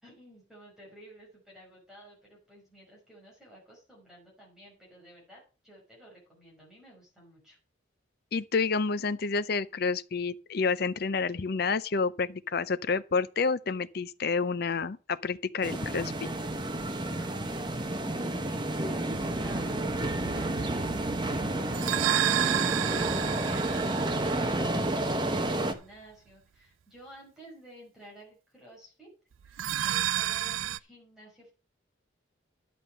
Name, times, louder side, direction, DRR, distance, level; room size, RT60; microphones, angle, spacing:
voice 1, 0.0-7.6 17.0-20.9 21.3-29.1 29.4-31.5, right 1 dB, 5° right, 5.4 m, -53 dB
voice 2, 8.3-16.3, left 4 dB, 50° left, 0.5 m, -29 dB
sound 1, 15.6-25.7, right 1 dB, 20° right, 1.0 m, -30 dB
sound 2, 19.1-25.7 29.4-30.8, right 11 dB, 80° right, 0.4 m, -32 dB
11.0 x 7.1 x 5.7 m
head